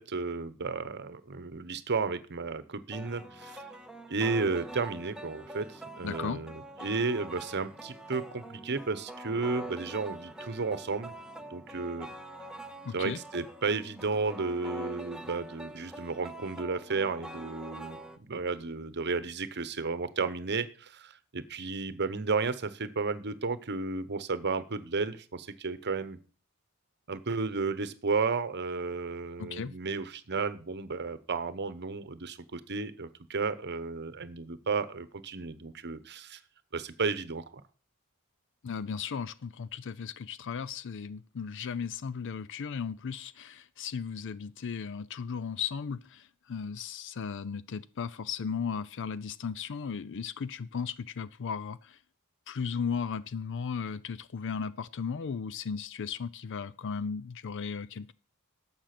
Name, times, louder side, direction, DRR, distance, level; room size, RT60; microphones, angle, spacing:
voice 1, 0.0-3.6 4.1-11.1 11.5-12.1 12.9-26.2 27.1-36.4 36.7-37.6, right 4 dB, 50° right, 14 dB, 1.0 m, -33 dB
sound 1, 2.9-18.2, right 1 dB, 5° right, 0.8 m, -44 dB
voice 2, 6.0-6.4 12.8-13.2 29.4-29.7 38.6-52.0 52.5-58.1, left 6 dB, 55° left, 17 dB, 0.5 m, -36 dB
11.5 x 7.4 x 5.9 m, 0.38 s
head